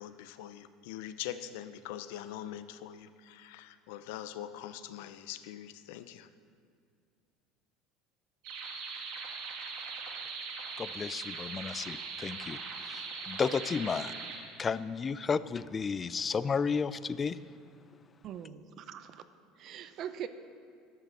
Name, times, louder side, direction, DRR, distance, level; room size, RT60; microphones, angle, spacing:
voice 1, 0.0-6.3, left 11 dB, 85° left, 12 dB, 0.5 m, -43 dB
sound 1, 8.4-14.4, right 4 dB, 75° right, 1.8 m, -40 dB
voice 2, 10.8-14.1 14.6-17.4, left 5 dB, 25° left, 16 dB, 0.3 m, -33 dB
voice 3, 18.2-19.3 19.6-20.3, right 9 dB, 50° right, 11 dB, 0.6 m, -42 dB
12.5 x 6.6 x 6.1 m, 2.2 s
supercardioid pair, 125°, 0 cm